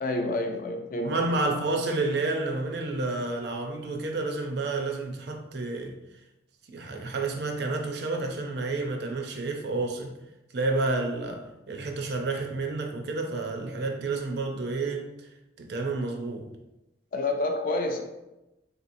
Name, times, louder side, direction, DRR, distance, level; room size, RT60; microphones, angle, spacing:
voice 1, 0.0-1.2 17.1-18.0, left 2 dB, 45° left, 0.4 m, -28 dB
voice 2, 1.0-5.9 6.7-10.1 10.5-15.3 15.6-16.5, right 3 dB, 55° right, 0.5 m, -30 dB
3.8 x 2.9 x 2.6 m
head